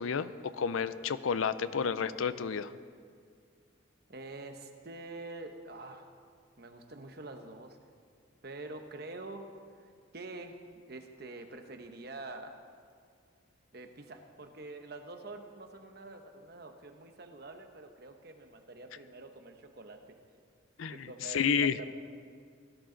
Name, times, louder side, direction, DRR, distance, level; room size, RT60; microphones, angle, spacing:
voice 1, 0.0-2.7 20.8-21.7, left 6 dB, 90° left, 14 dB, 0.5 m, -31 dB
voice 2, 4.1-6.1 6.6-7.8 8.4-10.6 10.9-12.6 13.7-20.2 20.9-21.9, right 2 dB, 50° right, 6 dB, 0.9 m, -46 dB
17.5 x 11.5 x 3.9 m, 2.1 s
head